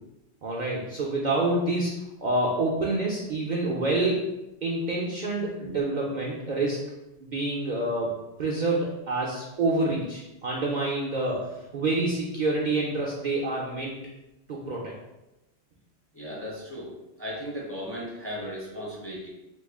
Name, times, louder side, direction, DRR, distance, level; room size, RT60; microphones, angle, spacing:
voice 1, 0.4-1.9 2.2-4.3 4.6-6.8 7.2-8.1 8.4-11.4 11.7-14.0 14.5-14.9, right 2 dB, 55° right, -4 dB, 0.5 m, -27 dB
voice 2, 16.1-16.9 17.2-19.3, equal, 15° left, -5 dB, 0.6 m, -36 dB
3.0 x 2.3 x 3.5 m, 0.95 s
omnidirectional pair, 1.1 m